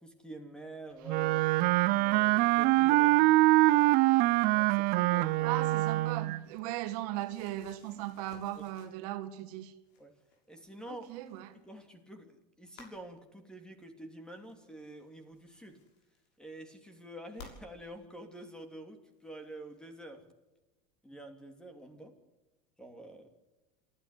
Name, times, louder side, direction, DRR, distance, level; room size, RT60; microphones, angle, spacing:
voice 1, 0.0-1.5 1.8-3.5 4.5-5.5 8.6-8.7 10.0-10.1 10.5-11.1 11.5-15.8 16.4-20.2 21.0-22.1 22.8-23.3, right 1 dB, 5° left, 3.0 m, -47 dB
Wind instrument woodwind instrument, 1.1-6.4, right 19 dB, 45° right, 0.7 m, -24 dB
voice 2, 5.4-9.7 10.9-11.5, right 14 dB, 65° right, 2.2 m, -38 dB
sound 1, 6.7-9.5 9.8-12.0 12.7-13.0 14.2-16.6 17.3-17.6 18.6-18.7 19.1-19.9, left 4 dB, 55° left, 6.7 m, -58 dB
27.0 x 12.5 x 8.4 m
supercardioid pair, 150°, 21 cm